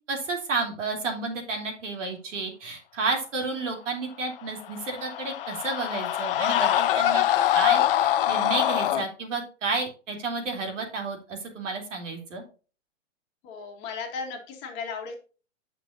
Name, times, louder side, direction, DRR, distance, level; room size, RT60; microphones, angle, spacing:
voice 1, 0.1-7.2 7.5-12.4, right 3 dB, 75° right, 2 dB, 3.1 m, -31 dB
Screaming, 4.6-9.0, left 12 dB, 45° left, 0.6 m, -24 dB
voice 2, 13.4-15.1, left 5 dB, 30° left, 2 dB, 1.6 m, -35 dB
9.1 x 6.0 x 2.6 m, 0.36 s
hypercardioid pair, 145°, 38 cm